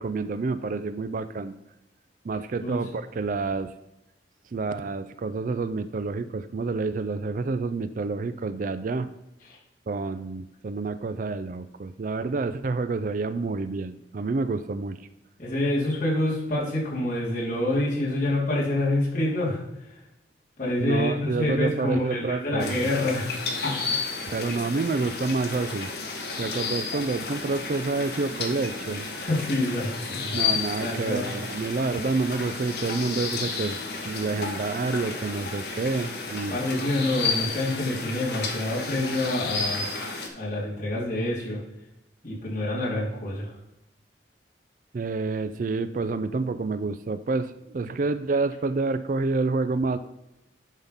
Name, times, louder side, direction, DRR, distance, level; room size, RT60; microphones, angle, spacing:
voice 1, 0.0-1.6 2.2-3.7 4.5-9.1 9.9-15.0 20.8-22.9 24.3-25.9 26.4-29.1 30.3-33.8 34.1-36.7 44.9-50.0, right 3 dB, 50° right, 13 dB, 0.4 m, -28 dB
voice 2, 15.4-19.6 20.6-23.3 23.6-23.9 29.2-30.4 30.8-31.3 36.5-39.9 40.3-41.6 42.2-43.5, left 1 dB, 45° left, -6 dB, 3.1 m, -27 dB
sound 1, 22.6-40.3, left 4 dB, 65° left, 1.4 m, -32 dB
10.5 x 3.7 x 5.6 m, 0.90 s
head